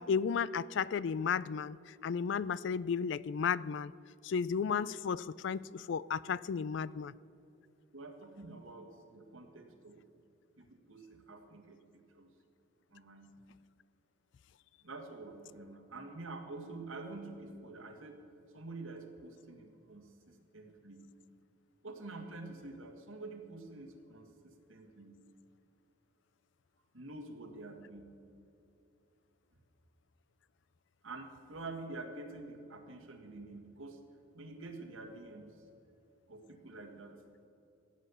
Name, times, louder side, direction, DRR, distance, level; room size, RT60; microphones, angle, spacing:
voice 1, 0.0-1.8 2.0-3.9 4.2-7.1, left 6 dB, 60° left, 0.3 m, -33 dB
voice 2, 7.9-10.0 10.6-12.3 12.9-13.4 14.8-18.2 18.5-21.1 21.8-25.2 26.9-28.2 31.0-34.0 34.3-35.6 36.3-37.2, right 2 dB, 80° right, 1.8 m, -48 dB
15.5 x 8.5 x 6.9 m
head